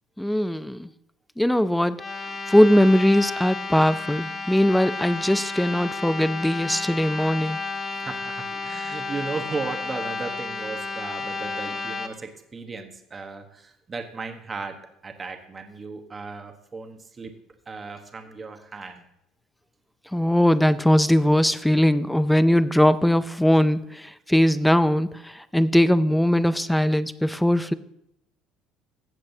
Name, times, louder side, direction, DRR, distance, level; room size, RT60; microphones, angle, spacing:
voice 1, 0.2-0.9 1.4-2.0 2.5-7.6 20.1-27.7, equal, ahead, 15 dB, 0.3 m, -20 dB
sound 1, 1.9-12.1, left 3 dB, 20° left, 0.8 m, -32 dB
voice 2, 7.9-17.3 17.7-19.0, right 4 dB, 20° right, 5 dB, 1.1 m, -36 dB
15.5 x 7.5 x 2.7 m, 0.79 s
cardioid pair, 155°, 0 cm